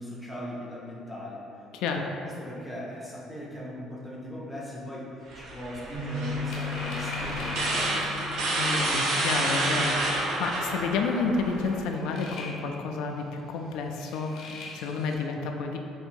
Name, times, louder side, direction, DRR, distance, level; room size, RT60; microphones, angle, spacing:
voice 1, 0.0-5.1 5.3-8.2, equal, ahead, -5 dB, 0.6 m, -39 dB
voice 2, 1.7-2.1 8.5-15.8, left 4 dB, 80° left, 3 dB, 0.3 m, -30 dB
sound 1, 5.3-11.8, right 2 dB, 60° right, 0.6 m, -29 dB
sound 2, 5.9-12.2, left 5 dB, 35° right, 1.3 m, -39 dB
sound 3, 6.5-8.9 9.1-9.9 10.2-10.3 11.9-12.7 13.0-13.1 13.9-15.1, left 3 dB, 65° left, 0.7 m, -42 dB
3.8 x 2.6 x 4.4 m, 2.6 s
cardioid pair, 165°, 0 cm